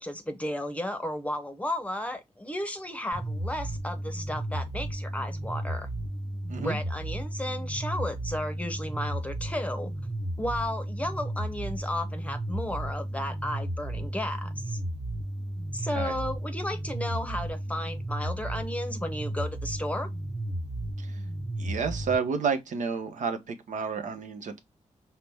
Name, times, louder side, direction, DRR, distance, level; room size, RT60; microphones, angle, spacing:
voice 1, 0.0-5.9 6.6-9.9 10.4-14.8 15.7-20.1, left 1 dB, 10° left, 0.7 m, -34 dB
sound 1, 3.1-22.1, right 1 dB, 55° right, 1.4 m, -34 dB
voice 2, 21.6-24.6, right 5 dB, 80° right, 0.9 m, -30 dB
5.7 x 2.1 x 3.4 m
wide cardioid pair, 145°, 13 cm